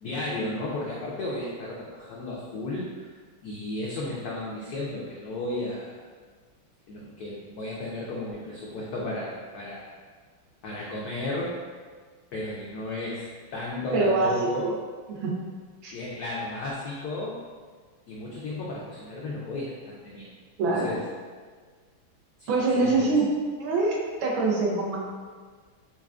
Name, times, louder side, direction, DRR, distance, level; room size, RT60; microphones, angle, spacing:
voice 1, 0.0-3.1 3.4-6.0 6.9-9.9 10.6-11.6 12.3-14.7 15.9-17.4 18.1-20.3 20.6-21.0 22.4-23.1, left 2 dB, 90° left, -5 dB, 0.8 m, -34 dB
voice 2, 13.9-14.3 14.6-14.7 15.1-15.3 15.8-15.9 20.6-20.9 22.5-23.3 23.6-25.0, right 3 dB, 75° right, -2 dB, 1.4 m, -24 dB
5.7 x 2.3 x 2.4 m, 1.5 s
omnidirectional pair, 2.3 m